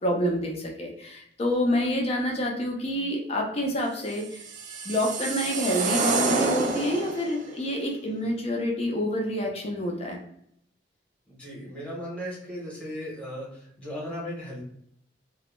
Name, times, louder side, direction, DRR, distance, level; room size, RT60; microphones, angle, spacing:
voice 1, 0.0-4.4 4.8-10.2, equal, 35° left, 0 dB, 0.5 m, -27 dB
sound 1, 4.2-7.4, right 3 dB, 45° right, 0.3 m, -28 dB
voice 2, 11.3-14.6, equal, 5° left, -5 dB, 0.9 m, -36 dB
2.2 x 2.0 x 3.0 m, 0.70 s
head